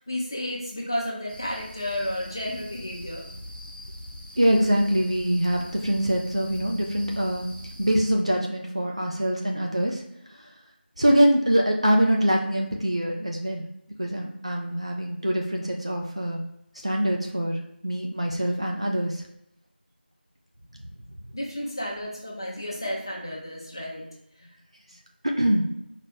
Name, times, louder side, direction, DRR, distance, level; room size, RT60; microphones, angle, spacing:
voice 1, 0.0-3.2 21.3-24.0 24.4-24.5, left 1 dB, 25° left, -2 dB, 0.7 m, -32 dB
sound 1, 1.3-8.1, equal, 55° left, 0.7 m, -42 dB
voice 2, 4.4-7.5 7.8-10.0 10.3-10.5 11.0-13.6 14.0-16.4 16.8-17.6 17.8-19.2 25.2-25.6, equal, 35° right, 0 dB, 0.4 m, -24 dB
4.0 x 2.1 x 3.4 m, 0.81 s
figure-of-eight pair, 175°, 6 cm